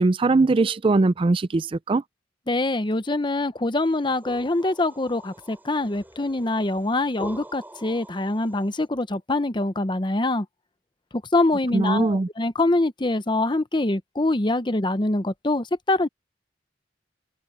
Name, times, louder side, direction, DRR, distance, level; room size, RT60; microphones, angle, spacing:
voice 1, 0.0-2.0 11.7-12.3, right 3 dB, 30° right, 0.4 m, -20 dB
voice 2, 2.5-10.4 11.3-16.1, left 2 dB, 25° left, 0.8 m, -24 dB
sound 1, 3.9-8.8, right 1 dB, 10° right, 7.9 m, -44 dB
head